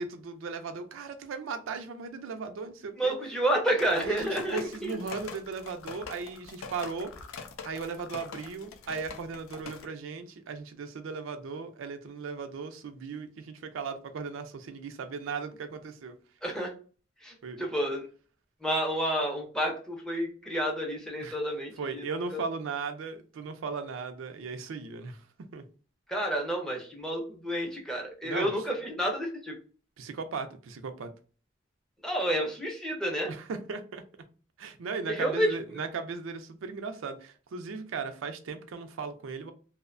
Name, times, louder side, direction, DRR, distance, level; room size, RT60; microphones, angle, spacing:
voice 1, 0.0-3.1 4.0-7.1 7.6-16.2 17.4-17.6 21.2-21.4 21.8-25.2 25.5-25.6 28.2-28.5 30.0-31.1 33.3-34.0 34.6-39.5, right 4 dB, 80° right, 0.4 m, -37 dB
voice 2, 3.0-5.0 16.4-16.7 17.2-18.1 18.6-22.5 26.1-29.6 32.0-33.3 35.1-35.6, right 1 dB, 5° left, 0.5 m, -30 dB
sound 1, 3.8-9.9, left 5 dB, 85° left, 0.4 m, -44 dB
2.6 x 2.1 x 2.4 m
head